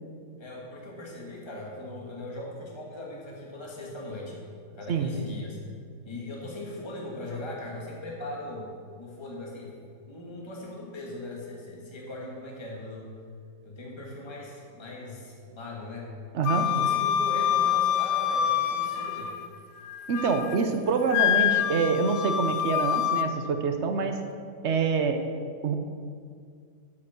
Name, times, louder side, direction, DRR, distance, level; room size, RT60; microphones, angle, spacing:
voice 1, 0.4-5.6 6.0-8.7 9.0-9.7 10.1-13.1 13.6-16.1 16.6-19.3, left 1 dB, 15° left, -2 dB, 1.5 m, -39 dB
Wind instrument woodwind instrument, 16.4-19.5 19.9-20.6 21.1-23.3, left 10 dB, 85° left, 1.2 m, -26 dB
voice 2, 20.1-24.2 24.6-25.2 25.6-25.8, right 5 dB, 55° right, 6 dB, 0.8 m, -26 dB
8.4 x 6.5 x 6.9 m, 2.1 s
omnidirectional pair, 1.8 m